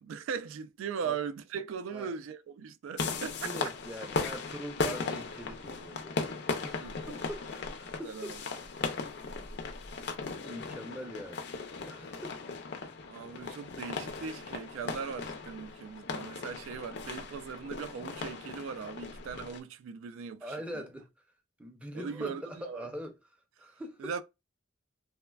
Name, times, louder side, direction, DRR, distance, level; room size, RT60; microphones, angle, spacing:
voice 1, 0.0-3.7 6.8-7.0 8.0-8.4 13.1-20.8 21.9-22.9 24.0-24.2, right 6 dB, 90° right, 0.3 m, -39 dB
sound 1, 3.0-19.6, left 4 dB, 60° left, 0.4 m, -37 dB
voice 2, 3.1-6.2 6.6-8.6 10.4-11.5 11.8-12.4 20.4-21.1 21.6-24.1, equal, 5° right, 0.4 m, -43 dB
3.1 x 2.1 x 2.2 m
head